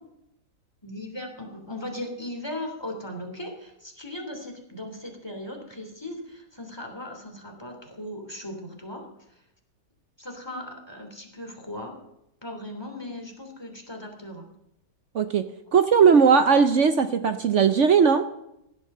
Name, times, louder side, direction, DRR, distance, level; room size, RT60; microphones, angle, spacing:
voice 1, 0.8-9.1 10.2-12.0 12.4-14.5, left 1 dB, 15° left, 2 dB, 3.1 m, -38 dB
voice 2, 15.7-18.3, right 6 dB, 55° right, 9 dB, 0.9 m, -18 dB
16.5 x 12.0 x 6.7 m, 0.83 s
omnidirectional pair, 1.8 m